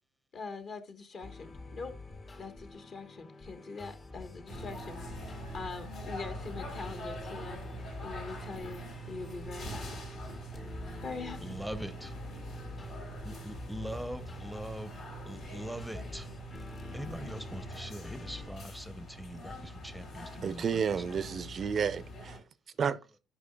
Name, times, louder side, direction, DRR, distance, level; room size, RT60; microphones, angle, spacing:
voice 1, 0.3-1.9 2.4-5.2 5.5-7.6 8.0-10.0 11.0-11.6, left 4 dB, 50° left, 1.2 m, -43 dB
sound 1, 1.2-18.6, left 3 dB, 30° left, 0.8 m, -47 dB
sound 2, 4.5-22.4, right 1 dB, 70° left, 3.3 m, -44 dB
voice 2, 11.4-12.1 13.2-14.9 15.3-16.3 16.9-21.3, equal, ahead, 0.6 m, -42 dB
voice 3, 20.4-22.4 22.8-23.0, right 7 dB, 45° right, 0.5 m, -31 dB
11.5 x 4.8 x 2.3 m
hypercardioid pair, 60°, 0 cm